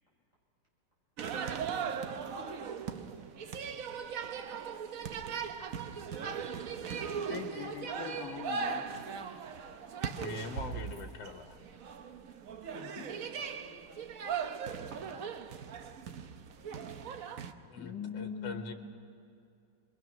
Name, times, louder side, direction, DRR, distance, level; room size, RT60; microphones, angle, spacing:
sound 1, 1.2-17.5, right 6 dB, 55° right, 1.1 m, -39 dB
voice 1, 7.2-8.8 12.7-12.9 17.8-18.6, left 6 dB, 55° left, 2 dB, 2.6 m, -41 dB
voice 2, 10.2-11.6 17.7-18.7, left 3 dB, 70° left, 5 dB, 1.9 m, -42 dB
voice 3, 12.8-15.8, right 1 dB, 40° right, -5 dB, 7.2 m, -60 dB
26.0 x 22.5 x 6.2 m, 2.6 s
omnidirectional pair, 2.0 m